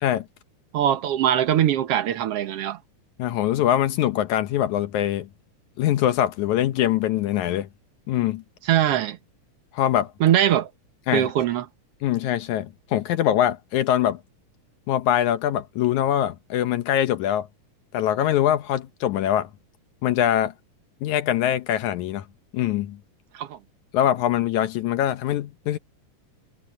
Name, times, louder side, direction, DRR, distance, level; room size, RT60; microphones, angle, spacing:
voice 1, 0.7-2.8 8.7-9.2 10.2-10.7 11.1-11.7 23.3-23.6, right 11 dB, 60° right, 1.7 m, -21 dB
voice 2, 3.2-5.3 5.8-7.7 8.1-8.4 9.7-10.1 11.1-11.3 12.0-14.2 14.9-17.5 17.9-19.5 20.0-20.5 21.0-22.2 22.5-23.0 23.9-25.8, left 11 dB, 75° left, 2.1 m, -23 dB
omnidirectional pair, 3.6 m